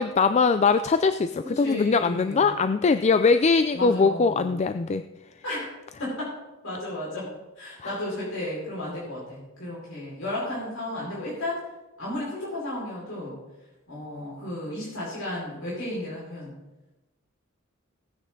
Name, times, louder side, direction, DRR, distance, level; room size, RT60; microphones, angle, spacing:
voice 1, 0.0-5.0 7.8-7.9, left 4 dB, 35° left, 10 dB, 0.4 m, -22 dB
voice 2, 1.4-2.6 3.7-4.6 5.4-5.7 6.0-6.3 6.6-7.3 7.6-11.6 12.0-13.3 13.9-16.5, left 1 dB, 80° left, -7 dB, 5.0 m, -33 dB
17.0 x 9.7 x 3.8 m, 1.1 s
head